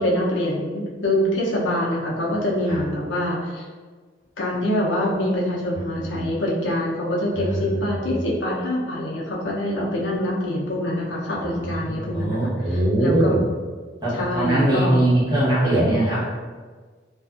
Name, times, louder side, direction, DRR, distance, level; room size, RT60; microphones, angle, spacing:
voice 1, 0.0-3.6 4.4-12.4 13.0-13.4 14.1-15.1 15.6-15.9, left 1 dB, 85° left, -4 dB, 0.6 m, -25 dB
voice 2, 5.7-6.3 7.3-7.7 8.0-8.2 11.7-13.4 14.0-16.2, right 1 dB, 20° right, -11 dB, 1.0 m, -22 dB
2.4 x 2.3 x 2.4 m, 1.5 s
head